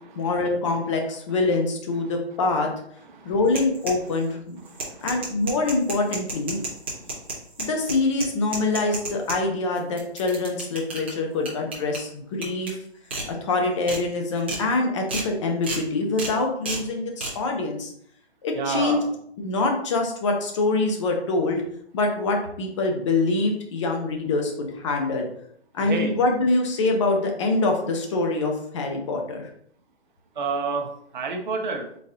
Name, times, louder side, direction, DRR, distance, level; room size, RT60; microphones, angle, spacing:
voice 1, 0.1-2.7 3.2-4.6 5.0-6.6 7.6-12.8 13.3-17.9 18.4-19.0 19.4-21.6 21.9-25.3 25.7-29.5, left 3 dB, 30° left, 2 dB, 0.7 m, -25 dB
sound 1, 3.5-4.2 4.6-9.4 9.8-11.1 11.4-12.0 12.4-12.7 13.1-13.2 13.6-14.0 14.4-14.6 15.1-15.3 15.6-15.8 16.2-16.3 16.6-16.8 17.2-17.3, right 3 dB, 10° right, 0.4 m, -31 dB
voice 2, 18.5-19.1 25.9-26.1 30.4-30.9 31.1-31.9, right 4 dB, 45° right, 2 dB, 0.9 m, -27 dB
4.0 x 3.7 x 2.7 m, 0.67 s
hypercardioid pair, 145°, 33 cm